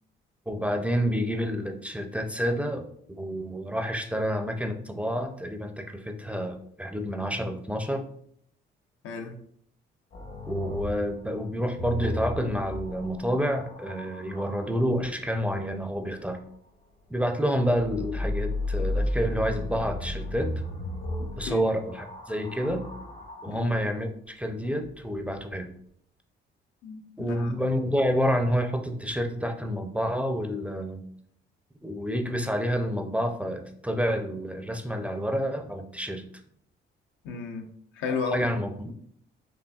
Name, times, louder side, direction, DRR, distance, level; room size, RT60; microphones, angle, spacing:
voice 1, 0.5-8.0 10.5-16.4 17.1-20.5 21.4-22.8 23.4-25.7 27.2-31.0 31.8-36.2 38.3-38.9, equal, 5° right, 5 dB, 0.4 m, -29 dB
voice 2, 9.0-9.4 21.2-21.8 23.5-23.7 26.8-27.6 37.2-38.7, left 5 dB, 80° left, 4 dB, 0.6 m, -34 dB
sound 1, 10.1-14.7 17.7-23.8 24.8-25.4, left 1 dB, 65° left, 1.3 m, -34 dB
5.1 x 2.5 x 2.3 m, 0.64 s
cardioid pair, 90°, 20 cm